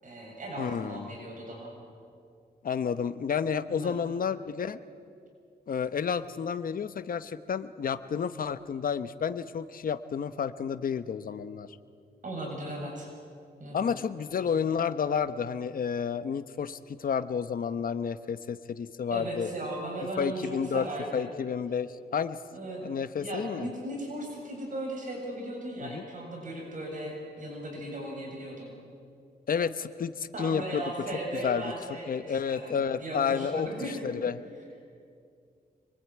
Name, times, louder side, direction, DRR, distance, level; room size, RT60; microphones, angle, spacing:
voice 1, 0.0-1.7 3.7-3.9 12.2-13.1 13.6-13.9 19.1-21.3 22.5-22.9 23.2-28.7 30.3-34.0, right 1 dB, 50° right, -1 dB, 7.2 m, -37 dB
voice 2, 0.6-1.2 2.6-4.8 5.7-11.7 13.7-19.5 20.2-20.9 21.1-22.4 22.8-23.7 25.8-26.0 29.5-30.8 31.4-31.7 32.1-34.4, left 7 dB, 60° left, 12 dB, 1.0 m, -31 dB
26.0 x 22.5 x 9.6 m, 2.4 s
wide cardioid pair, 135°, 17 cm